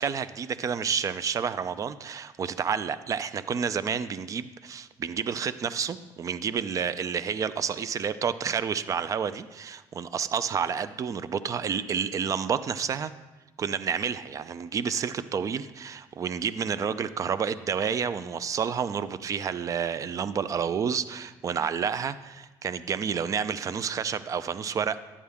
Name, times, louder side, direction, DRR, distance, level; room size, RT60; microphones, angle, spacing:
voice 1, 0.0-13.1 13.6-25.0, right 7 dB, 40° right, 14 dB, 0.5 m, -30 dB
11.0 x 8.5 x 3.6 m, 1.2 s
cardioid pair, 105°, 9 cm